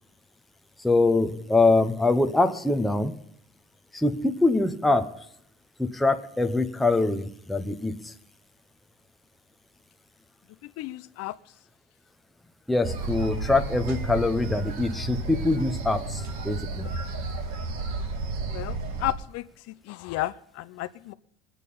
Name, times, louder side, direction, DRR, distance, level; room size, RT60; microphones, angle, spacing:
voice 1, 0.8-3.1 3.9-5.2 5.8-8.1 12.7-16.9, left 2 dB, ahead, 6 dB, 0.6 m, -24 dB
voice 2, 10.8-11.3 18.5-19.4 19.9-21.1, left 15 dB, 50° left, 13 dB, 0.5 m, -32 dB
sound 1, 12.8-19.1, right 3 dB, 60° right, 2.4 m, -32 dB
20.5 x 8.5 x 5.4 m, 0.75 s
cardioid pair, 170°, 31 cm